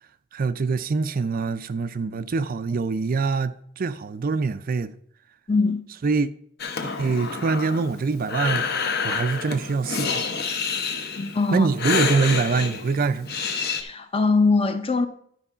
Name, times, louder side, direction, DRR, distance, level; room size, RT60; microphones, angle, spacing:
voice 1, 0.3-4.9 6.0-6.3 6.8-8.6 9.0-10.5 11.5-13.4, right 4 dB, 45° right, 0.4 m, -24 dB
voice 2, 5.5-5.8 11.3-11.7 13.8-15.1, left 3 dB, 25° left, 0.7 m, -21 dB
Breathing, 6.6-13.8, left 5 dB, 50° left, 1.0 m, -28 dB
11.5 x 4.7 x 5.5 m
head